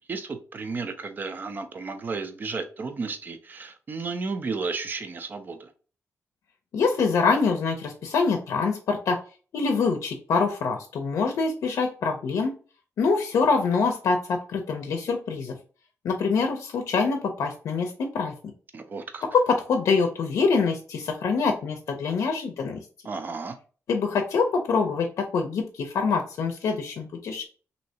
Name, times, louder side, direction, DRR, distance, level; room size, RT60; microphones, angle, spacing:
voice 1, 0.1-5.7 18.7-19.2 23.0-23.6, right 4 dB, 40° right, 0.5 m, -33 dB
voice 2, 6.7-9.2 9.5-12.5 13.0-15.5 16.0-18.3 19.3-22.8 23.9-27.5, left 4 dB, 90° left, 0.5 m, -25 dB
3.1 x 2.8 x 2.8 m
wide cardioid pair, 150°, 5 cm